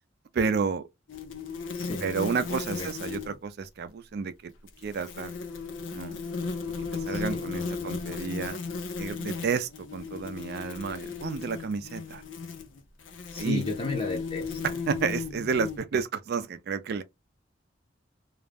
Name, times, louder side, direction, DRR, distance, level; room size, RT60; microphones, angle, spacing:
voice 1, 0.3-0.8 2.0-4.5 4.8-5.3 5.9-6.2 7.0-8.6 9.0-12.2 13.4-13.6 14.6-17.0, right 5 dB, 55° right, 0.4 m, -31 dB
sound 1, 1.1-3.4 4.7-15.8, left 4 dB, 80° left, 0.5 m, -35 dB
voice 2, 1.7-2.1 2.7-2.9 7.0-7.9 13.3-14.6, left 2 dB, 30° left, 0.5 m, -34 dB
2.3 x 2.0 x 3.3 m
head